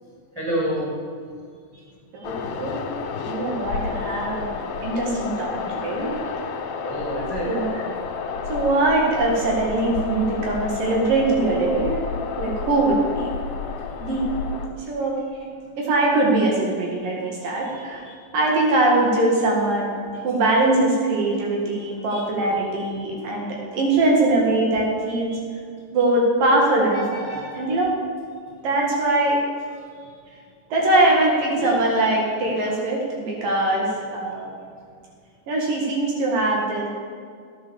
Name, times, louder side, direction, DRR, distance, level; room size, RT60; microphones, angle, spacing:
voice 1, 0.4-0.9 6.8-7.5 18.1-18.2 26.9-27.6 31.5-31.7, right 1 dB, 5° right, -4 dB, 4.8 m, -28 dB
voice 2, 2.1-2.8 3.3-4.5 4.8-6.1 7.4-7.8 8.5-12.0 12.4-13.4 14.0-14.3 14.9-15.2 15.8-18.0 18.3-25.4 25.9-27.9 28.6-29.4 30.7-33.9 34.1-34.5 35.5-36.9, right 2 dB, 70° right, -2 dB, 3.7 m, -22 dB
sound 1, 2.2-14.7, left 5 dB, 85° left, 3.2 m, -30 dB
16.0 x 9.5 x 7.2 m, 2.1 s
omnidirectional pair, 4.1 m